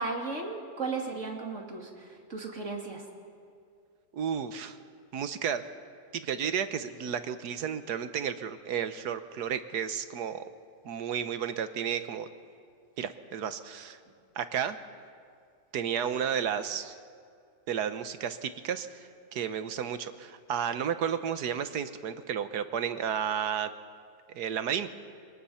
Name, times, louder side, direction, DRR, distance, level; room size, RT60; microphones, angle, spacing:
voice 1, 0.0-1.9 2.3-3.0, right 3 dB, 45° right, 1 dB, 2.9 m, -35 dB
voice 2, 4.1-4.8 5.1-5.6 6.1-10.5 10.8-12.3 13.0-14.0 14.3-14.8 15.7-16.9 17.7-23.7 24.3-24.9, right 8 dB, 70° right, 10 dB, 1.5 m, -32 dB
24.0 x 19.0 x 5.8 m, 2.3 s
omnidirectional pair, 1.8 m